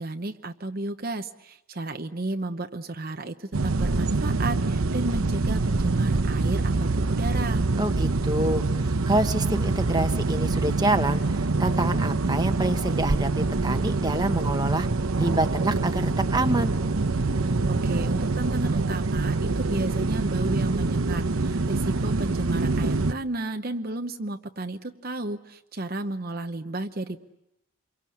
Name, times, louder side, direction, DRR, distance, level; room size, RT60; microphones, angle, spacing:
voice 1, 0.0-7.6 17.7-27.2, right 2 dB, 45° right, 6 dB, 0.9 m, -33 dB
sound 1, 3.5-23.1, right 3 dB, 85° right, 0.9 m, -25 dB
voice 2, 7.8-14.9 15.2-16.7, right 1 dB, 20° right, 6 dB, 1.2 m, -27 dB
27.5 x 23.5 x 8.6 m, 0.87 s
head